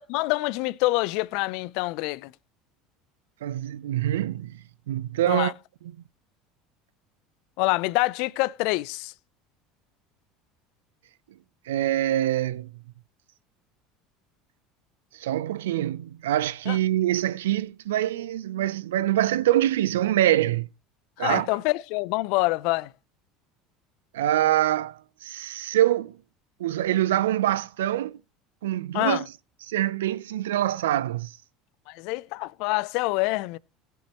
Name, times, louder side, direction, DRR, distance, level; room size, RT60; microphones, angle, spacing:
voice 1, 0.0-2.3 5.3-5.5 7.6-9.1 16.7-16.8 21.2-22.9 28.9-29.2 31.9-33.6, left 21 dB, 70° left, 0.5 m, -26 dB
voice 2, 3.4-4.6 4.9-5.5 11.7-12.7 15.1-20.7 21.2-21.5 24.1-26.2 26.6-28.2 28.6-29.2 29.6-31.4, right 13 dB, 85° right, 0.5 m, -25 dB
16.5 x 7.0 x 3.0 m
hypercardioid pair, 90°, 0 cm